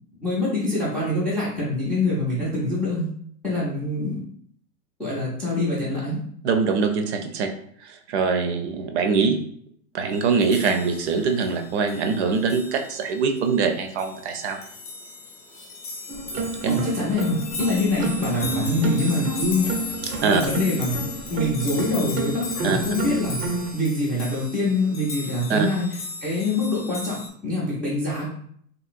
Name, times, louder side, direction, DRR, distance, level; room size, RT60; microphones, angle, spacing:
voice 1, 0.1-3.1 3.4-4.2 5.0-6.2 16.7-19.8 20.2-23.4 23.7-25.9 26.2-28.3, left 2 dB, ahead, -10 dB, 0.3 m, -25 dB
voice 2, 6.4-7.5 7.8-9.4 9.9-14.6 16.6-16.7 20.2-20.4 22.6-22.8 25.5-25.7, right 5 dB, 50° right, 6 dB, 0.5 m, -23 dB
sound 1, 10.1-27.3, left 4 dB, 30° left, 0.7 m, -37 dB
sound 2, 16.1-23.7, right 3 dB, 85° right, 0.7 m, -30 dB
2.9 x 2.9 x 2.4 m, 0.63 s
hypercardioid pair, 115°, 45 cm